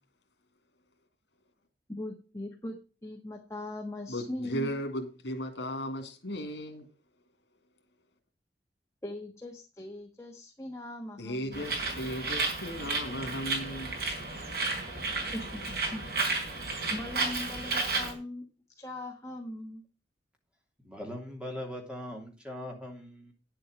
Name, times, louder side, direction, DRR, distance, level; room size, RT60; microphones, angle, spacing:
voice 1, 1.9-4.7 9.0-11.7 15.3-16.0 16.9-18.4 18.8-19.8, left 1 dB, 15° left, 1.4 m, -40 dB
voice 2, 4.1-6.9 11.2-14.0, equal, 90° left, 2.3 m, -36 dB
Bird, 11.5-18.1, right 3 dB, 60° right, 4.4 m, -32 dB
voice 3, 20.8-23.3, left 1 dB, 5° right, 2.9 m, -40 dB
10.0 x 7.7 x 5.0 m
head